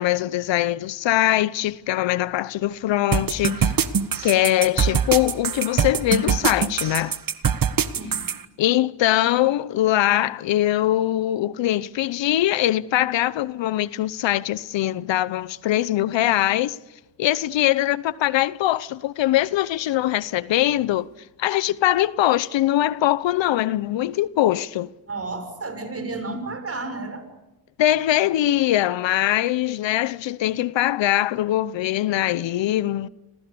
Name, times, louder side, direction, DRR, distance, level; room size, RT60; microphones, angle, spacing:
voice 1, 0.0-3.7 4.2-7.2 8.6-16.8 17.2-21.1 21.4-24.9 27.8-33.1, left 14 dB, 80° left, 0.9 m, -22 dB
sound 1, 3.1-8.4, right 7 dB, 50° right, 1.6 m, -22 dB
voice 2, 25.1-27.2, right 3 dB, 30° right, 6.4 m, -32 dB
29.0 x 26.5 x 7.0 m
cardioid pair, 75°, 44 cm